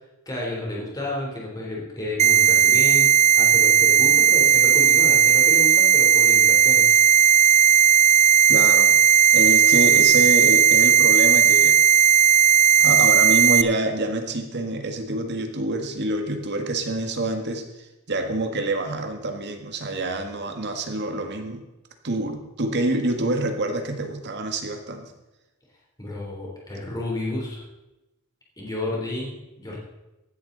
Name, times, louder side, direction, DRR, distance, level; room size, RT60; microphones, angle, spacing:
voice 1, 0.3-3.1 3.4-6.9 26.0-27.6 28.6-29.8, left 1 dB, 15° left, -4 dB, 3.6 m, -31 dB
sound 1, 2.2-13.6, right 9 dB, 30° right, 0.4 m, -16 dB
voice 2, 8.5-9.0 9.3-11.8 12.8-17.6 18.1-21.6 22.0-25.1, right 2 dB, 50° right, 5 dB, 1.7 m, -26 dB
15.0 x 11.5 x 4.0 m, 0.99 s
head